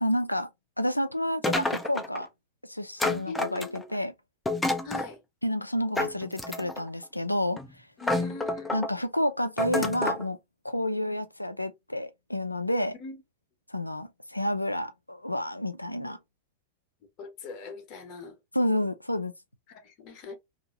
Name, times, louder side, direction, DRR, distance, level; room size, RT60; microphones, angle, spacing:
voice 1, 0.0-0.5 0.8-2.3 2.7-4.1 5.4-7.6 8.7-10.4 10.6-13.0 13.7-16.2 18.5-19.3, left 1 dB, 85° left, 0.4 m, -29 dB
sound 1, 1.4-2.2 3.0-4.0 4.5-5.1 6.0-6.9 7.6-7.7 8.0-8.9 9.6-10.2, left 2 dB, 5° left, 0.5 m, -29 dB
voice 2, 3.3-3.9 4.8-5.2 8.0-8.8 11.0-11.2 13.0-13.2 16.0-16.1 17.2-18.4 19.7-20.4, left 3 dB, 40° left, 0.8 m, -42 dB
2.7 x 2.5 x 2.9 m
figure-of-eight pair, 90°, 0 cm